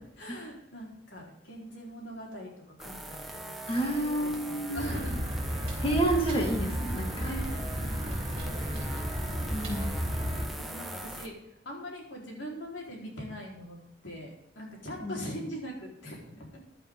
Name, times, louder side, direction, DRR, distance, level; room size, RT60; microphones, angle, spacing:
voice 1, 0.2-2.5 2.8-5.2 7.2-9.2 10.6-11.3 11.6-13.8 14.0-16.5, equal, 80° left, -1 dB, 4.4 m, -42 dB
sound 1, 2.8-11.3, right 1 dB, ahead, 1.4 m, -42 dB
voice 2, 3.7-4.9 5.8-7.3 9.5-9.9 15.0-15.1, right 1 dB, 30° left, 2 dB, 2.4 m, -29 dB
sound 2, 4.8-10.5, equal, 30° right, 3.8 m, -33 dB
15.0 x 10.5 x 3.8 m, 0.81 s
head